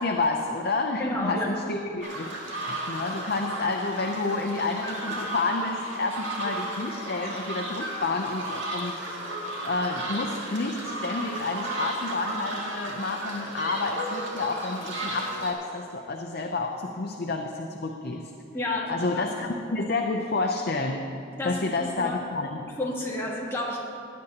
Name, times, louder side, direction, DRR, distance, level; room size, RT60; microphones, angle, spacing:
voice 1, 0.0-18.3 18.9-21.0 21.4-22.7, left 3 dB, 50° left, 2 dB, 0.5 m, -30 dB
voice 2, 1.0-1.5 18.5-19.2 21.4-22.2 22.6-23.8, left 1 dB, 15° left, -4 dB, 1.5 m, -31 dB
sound 1, 2.0-15.5, right 1 dB, 70° right, 1.8 m, -34 dB
16.5 x 9.4 x 2.9 m, 2.9 s
head